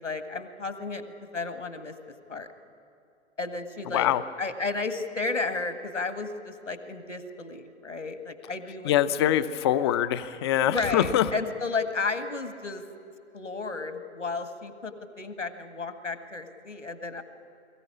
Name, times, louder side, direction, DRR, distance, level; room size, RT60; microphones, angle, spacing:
voice 1, 0.0-1.9 2.3-2.5 3.4-4.1 4.4-8.9 9.2-9.5 10.6-12.8 13.3-17.2, left 4 dB, 85° left, 9 dB, 1.8 m, -33 dB
voice 2, 8.8-11.3, left 11 dB, 25° left, 12 dB, 0.5 m, -24 dB
22.5 x 15.0 x 9.7 m, 2.6 s
figure-of-eight pair, 115°, 36 cm